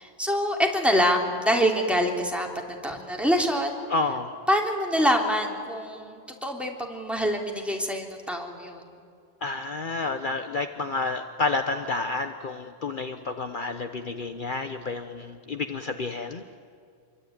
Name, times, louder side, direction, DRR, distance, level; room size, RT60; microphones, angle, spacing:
voice 1, 0.0-2.5 2.8-3.8 4.5-8.9, equal, ahead, 1 dB, 3.3 m, -25 dB
voice 2, 3.9-4.4 9.4-16.4, left 3 dB, 50° left, 7 dB, 1.2 m, -30 dB
26.5 x 24.0 x 9.4 m, 2.3 s
omnidirectional pair, 1.1 m